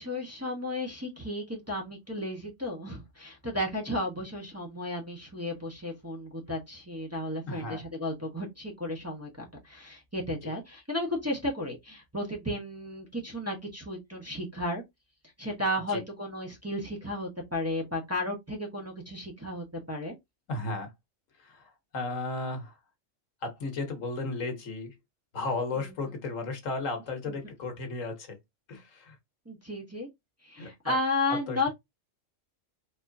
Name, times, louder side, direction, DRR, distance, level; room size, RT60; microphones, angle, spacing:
voice 1, 0.0-14.8 15.4-20.1 29.5-30.1 30.4-31.7, left 1 dB, 15° right, 0.9 m, -33 dB
voice 2, 7.5-7.8 15.9-16.0 20.5-20.9 21.4-22.8 23.4-24.9 25.3-28.4 28.7-29.2 30.6-31.0 31.3-31.7, left 3 dB, 85° left, 1.5 m, -34 dB
4.3 x 2.8 x 2.6 m
omnidirectional pair, 1.3 m